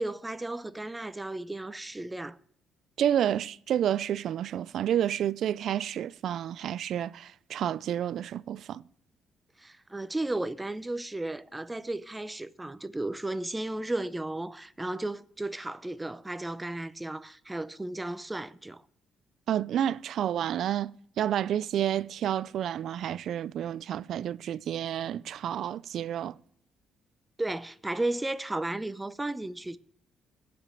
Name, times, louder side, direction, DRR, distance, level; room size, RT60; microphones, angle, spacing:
voice 1, 0.0-2.4 9.6-18.8 27.4-29.8, right 2 dB, 15° right, 0.6 m, -34 dB
voice 2, 3.0-8.8 19.5-20.9 21.2-26.4, right 10 dB, 70° right, 0.3 m, -30 dB
14.0 x 5.1 x 8.3 m
cardioid pair, 90°, 0 cm